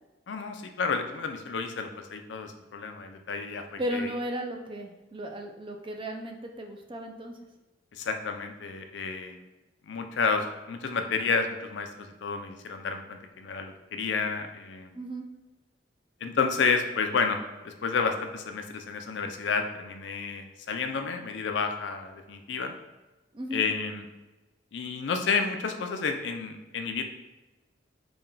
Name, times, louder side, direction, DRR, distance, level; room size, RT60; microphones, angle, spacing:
voice 1, 0.3-4.1 7.9-9.4 9.9-14.9 16.2-22.7 23.5-24.1 24.7-27.0, left 5 dB, 75° left, 5 dB, 0.4 m, -30 dB
voice 2, 3.8-7.3 14.9-15.3 23.3-23.6, equal, 30° right, 2 dB, 0.5 m, -35 dB
4.2 x 2.2 x 3.8 m, 1.1 s
head